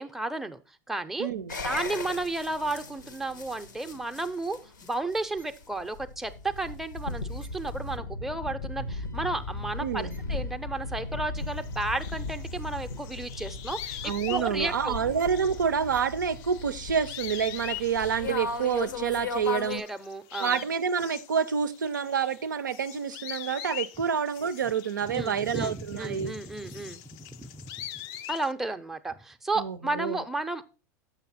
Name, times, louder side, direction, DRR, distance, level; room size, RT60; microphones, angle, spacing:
voice 1, 0.0-1.3 1.6-14.9 19.7-20.6 25.1-27.8 28.3-30.6, right 2 dB, 5° right, 0.5 m, -33 dB
voice 2, 1.2-1.6 9.8-10.2 14.0-19.8 20.4-26.3 29.6-30.2, right 7 dB, 85° right, 0.4 m, -28 dB
sound 1, 1.5-19.8, left 3 dB, 85° left, 0.8 m, -37 dB
sound 2, 11.4-19.1 19.4-28.5, left 12 dB, 50° left, 0.4 m, -43 dB
6.7 x 5.9 x 4.1 m
hypercardioid pair, 90°, 10 cm